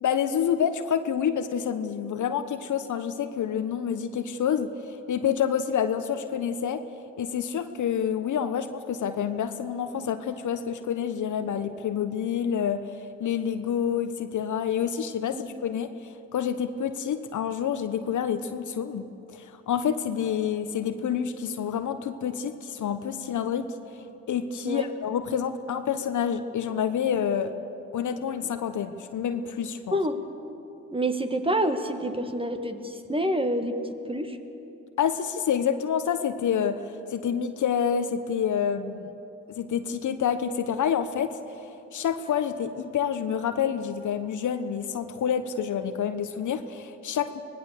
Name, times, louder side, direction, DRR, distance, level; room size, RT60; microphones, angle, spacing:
voice 1, 0.0-4.7 5.1-6.8 7.2-12.9 13.2-15.9 16.3-19.1 19.3-23.7 24.3-27.5 27.9-30.0 35.0-36.8 37.1-39.1 39.5-41.4 41.9-47.4, left 8 dB, 55° left, 10 dB, 1.2 m, -28 dB
voice 2, 30.9-33.8 34.1-34.4, right 1 dB, 15° right, 7 dB, 2.0 m, -27 dB
25.0 x 19.0 x 6.8 m, 2.9 s
hypercardioid pair, 50°, 37 cm